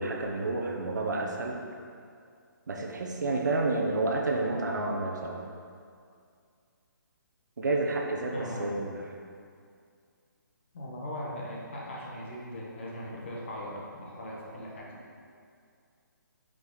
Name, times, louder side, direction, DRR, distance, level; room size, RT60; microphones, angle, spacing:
voice 1, 0.0-1.6 2.7-5.5 7.6-9.0, right 2 dB, 60° right, 1 dB, 0.9 m, -30 dB
voice 2, 8.3-8.7 10.7-15.0, equal, 35° left, -4 dB, 1.1 m, -39 dB
6.2 x 5.1 x 4.0 m, 2.3 s
hypercardioid pair, 175°, 11 cm